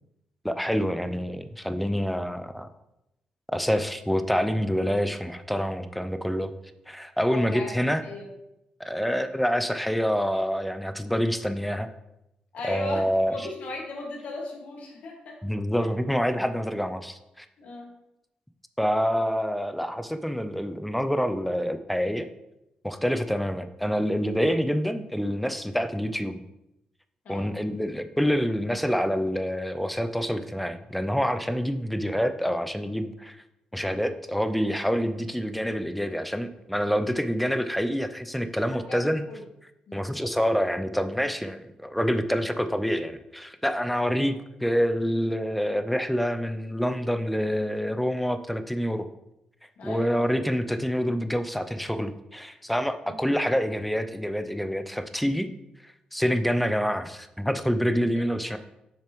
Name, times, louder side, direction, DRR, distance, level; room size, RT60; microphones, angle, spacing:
voice 1, 0.4-2.7 3.5-6.5 6.9-8.0 8.8-11.9 12.6-13.4 15.4-17.5 18.8-22.3 22.8-26.4 27.3-33.4 33.7-39.2 39.9-44.4 44.6-49.1 49.8-55.5 55.8-58.6, equal, ahead, 10 dB, 0.4 m, -27 dB
voice 2, 7.3-7.7 8.0-8.3 12.5-15.4 17.6-17.9 27.3-27.5 38.7-39.4 39.9-40.1 49.8-50.2 53.1-53.2 58.2-58.5, left 2 dB, 65° left, 0 dB, 1.8 m, -37 dB
6.8 x 6.6 x 3.0 m, 0.89 s
wide cardioid pair, 150°, 3 cm